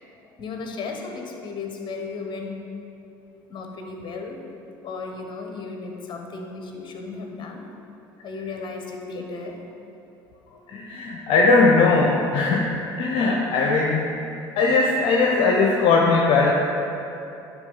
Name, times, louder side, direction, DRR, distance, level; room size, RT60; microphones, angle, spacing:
voice 1, 0.4-2.5 3.5-4.4 4.8-7.6 8.2-9.6, left 4 dB, 40° left, 2 dB, 1.3 m, -35 dB
voice 2, 10.7-12.7 13.0-14.1 14.6-16.5, left 3 dB, 60° left, -1 dB, 0.8 m, -19 dB
9.9 x 4.0 x 5.7 m, 2.9 s
hypercardioid pair, 70°, 12 cm